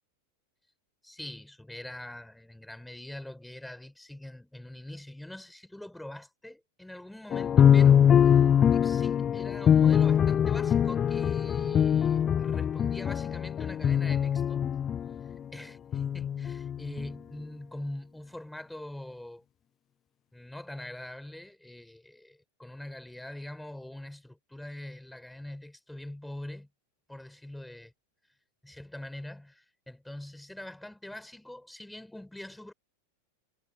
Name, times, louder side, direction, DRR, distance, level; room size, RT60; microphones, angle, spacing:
voice 1, 1.0-14.7 15.5-19.4 20.3-26.7 27.1-27.9 28.6-32.7, left 1 dB, 5° left, 6.0 m, -43 dB
sound 1, 7.3-15.4 15.9-17.1, left 8 dB, 25° left, 0.4 m, -23 dB
figure-of-eight pair, 90°, 0 cm